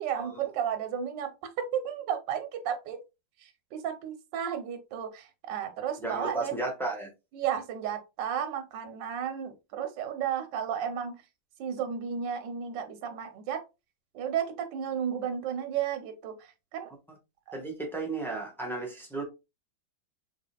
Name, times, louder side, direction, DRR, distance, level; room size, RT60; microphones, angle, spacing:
voice 1, 0.0-1.3 1.6-3.0 3.4-6.5 7.3-11.2 11.6-13.6 14.1-16.9 17.5-17.6, right 8 dB, 65° right, 1.4 m, -33 dB
voice 2, 6.0-7.1 17.5-19.2, right 3 dB, ahead, 0.9 m, -34 dB
5.4 x 4.0 x 2.2 m
omnidirectional pair, 2.2 m